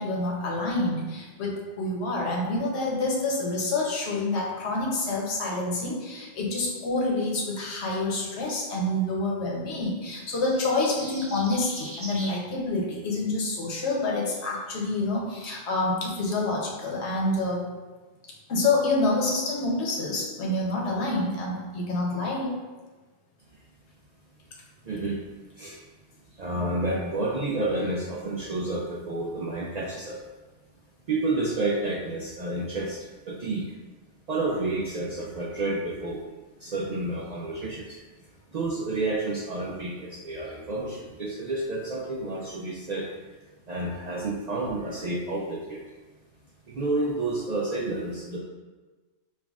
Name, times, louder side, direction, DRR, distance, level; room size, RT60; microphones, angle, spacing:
voice 1, 0.0-17.7 18.5-22.5, left 2 dB, 75° left, -2 dB, 1.1 m, -27 dB
sound 1, 10.3-12.4, right 1 dB, 15° right, 1.0 m, -40 dB
voice 2, 24.8-25.2 25.6-25.8 26.4-30.2 31.1-33.7 34.3-36.2 36.6-38.0 38.5-43.1 43.7-45.8 46.7-48.4, right 2 dB, 60° right, -4 dB, 0.4 m, -30 dB
5.5 x 2.5 x 2.3 m, 1.3 s
omnidirectional pair, 1.2 m